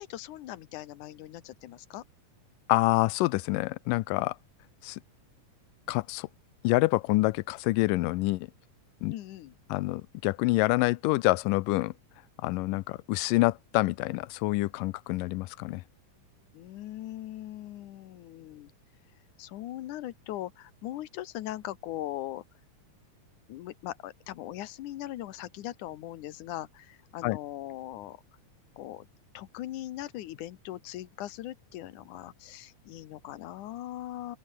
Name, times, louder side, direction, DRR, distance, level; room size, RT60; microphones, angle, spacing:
voice 1, 0.0-2.0 9.1-9.5 16.5-18.7 19.4-22.4 23.5-28.2 28.8-29.1 29.3-34.4, left 14 dB, 75° left, 2.5 m, -40 dB
voice 2, 2.7-4.4 4.8-5.0 5.9-6.3 6.6-8.5 9.0-9.1 9.7-11.9 12.4-15.8 27.2-27.4, left 20 dB, 90° left, 2.3 m, -27 dB
open air
omnidirectional pair, 3.7 m